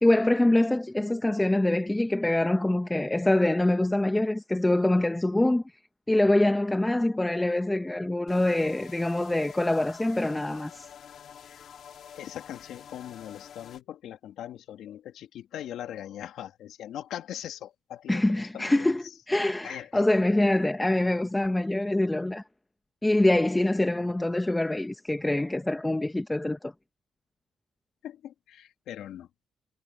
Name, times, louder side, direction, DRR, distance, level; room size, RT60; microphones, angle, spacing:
voice 1, 0.0-5.6 6.1-10.9 18.1-22.4 23.0-26.7, left 1 dB, 10° left, 1.2 m, -25 dB
sound 1, 8.3-13.8, left 8 dB, 65° left, 3.7 m, -48 dB
voice 2, 12.2-18.9 19.6-20.1 28.0-29.3, left 11 dB, 80° left, 2.6 m, -40 dB
cardioid pair, 90°, 0 cm